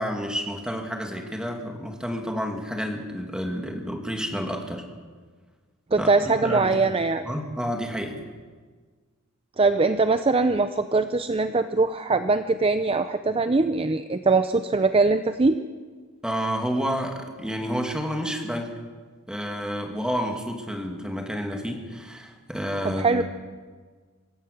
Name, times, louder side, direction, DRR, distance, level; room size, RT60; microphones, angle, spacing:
voice 1, 0.0-4.8 6.0-6.7 7.2-8.2 16.2-18.7 19.3-23.2, equal, 5° right, 2 dB, 2.3 m, -30 dB
voice 2, 5.9-7.2 9.6-15.6 22.8-23.2, right 3 dB, 25° right, 10 dB, 0.6 m, -22 dB
25.5 x 15.5 x 6.7 m, 1.5 s
head